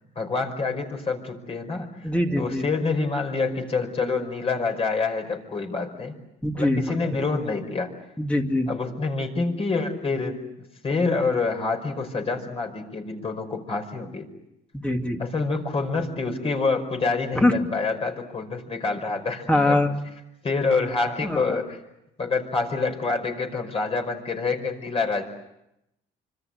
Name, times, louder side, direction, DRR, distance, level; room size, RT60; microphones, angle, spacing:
voice 1, 0.2-2.1 2.4-6.1 6.5-7.9 8.7-10.4 10.8-14.3 15.2-19.8 20.4-21.8 22.2-25.2, left 4 dB, 35° left, 4 dB, 5.2 m, -27 dB
voice 2, 2.0-2.7 6.4-7.0 8.2-8.7 14.7-15.2 17.3-17.6 19.5-19.9 21.2-21.6, left 1 dB, 5° left, 3 dB, 2.4 m, -23 dB
26.0 x 25.5 x 8.0 m, 0.87 s
cardioid pair, 110°, 17 cm